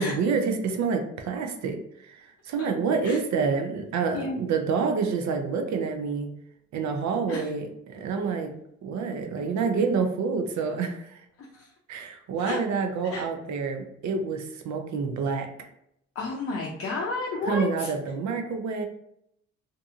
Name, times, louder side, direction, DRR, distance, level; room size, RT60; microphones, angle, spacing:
voice 1, 0.0-1.8 2.0-6.3 6.7-8.5 8.8-11.2 11.9-15.5 17.5-18.9, right 5 dB, 70° right, 5 dB, 0.5 m, -28 dB
voice 2, 16.2-17.9, left 3 dB, 50° left, -2 dB, 0.5 m, -32 dB
2.7 x 2.6 x 2.4 m, 0.76 s
cardioid pair, 90°, 30 cm